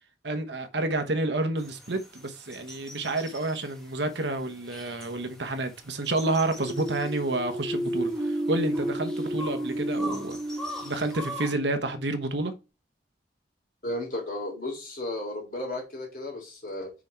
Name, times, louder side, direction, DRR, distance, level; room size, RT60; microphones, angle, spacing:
voice 1, 0.2-10.4 10.8-12.5, right 2 dB, 70° right, 1.1 m, -29 dB
sound 1, 1.6-11.5, equal, 5° left, 1.5 m, -44 dB
sound 2, 6.4-12.1, right 1 dB, 15° right, 1.6 m, -32 dB
voice 2, 13.8-16.9, left 1 dB, 50° left, 3.2 m, -34 dB
6.2 x 4.6 x 4.4 m
head